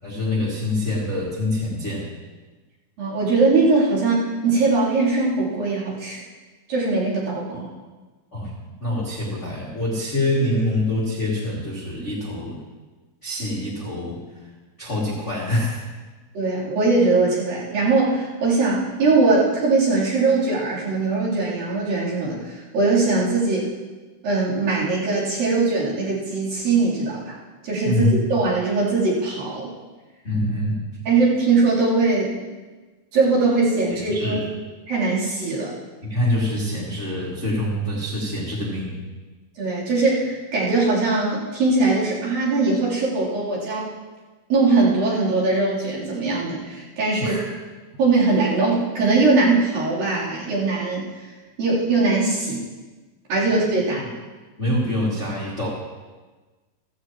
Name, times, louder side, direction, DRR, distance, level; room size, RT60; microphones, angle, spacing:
voice 1, 0.0-2.1 7.5-7.7 8.3-8.5 8.8-12.6 13.2-14.2 14.8-15.9 27.8-28.1 30.2-30.9 33.9-34.4 36.0-39.0 47.2-47.4 53.9-54.1 54.6-55.7, left 1 dB, 25° left, -6 dB, 1.9 m, -25 dB
voice 2, 3.0-6.2 6.7-7.7 16.3-23.7 24.2-27.3 27.6-28.0 28.3-29.7 31.0-32.3 33.1-34.5 34.9-35.7 39.6-43.9 44.5-47.4 48.0-51.1 51.6-52.6 53.3-54.0, right 3 dB, 65° right, -8 dB, 5.1 m, -21 dB
15.5 x 15.0 x 3.0 m, 1.3 s
omnidirectional pair, 4.4 m